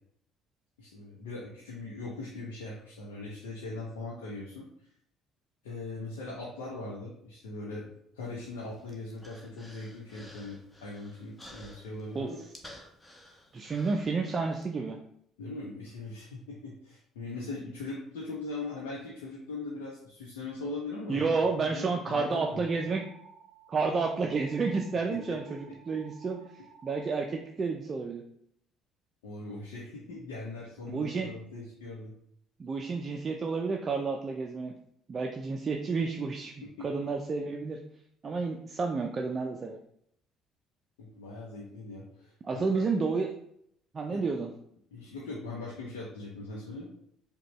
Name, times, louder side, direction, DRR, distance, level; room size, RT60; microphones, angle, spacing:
voice 1, 0.8-4.7 5.6-12.4 15.4-22.6 25.1-25.4 25.7-26.0 29.2-32.1 36.6-37.1 41.0-42.8 44.1-44.2 44.9-46.9, left 2 dB, 80° left, -4 dB, 0.7 m, -40 dB
Human voice, 8.4-14.6, left 1 dB, 15° left, 0.9 m, -53 dB
voice 2, 13.5-15.0 21.1-23.0 23.7-25.6 25.9-26.4 26.8-28.2 30.9-31.3 32.6-34.7 35.1-36.5 36.8-37.8 38.2-39.8 42.4-43.3 43.9-44.5, right 4 dB, 40° right, 2 dB, 0.4 m, -30 dB
sound 1, 22.4-27.2, right 5 dB, 15° right, 1.3 m, -55 dB
5.0 x 2.3 x 3.0 m, 0.70 s
hypercardioid pair, 55°, 0 cm